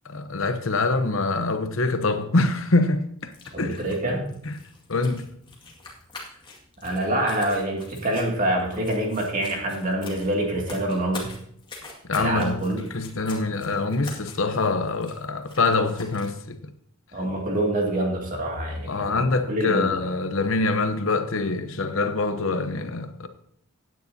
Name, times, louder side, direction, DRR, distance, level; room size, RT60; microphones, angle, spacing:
voice 1, 0.0-3.8 4.5-4.6 4.9-5.3 12.1-12.6 12.9-16.6 18.9-23.3, left 3 dB, 65° left, 0.8 m, -25 dB
sound 1, 3.2-16.4, left 3 dB, 20° left, 2.0 m, -45 dB
voice 2, 3.5-4.3 6.8-11.3 12.2-12.8 13.7-13.8 17.1-19.2 19.5-20.0, right 1 dB, 40° right, 2.4 m, -26 dB
16.0 x 9.3 x 2.8 m
head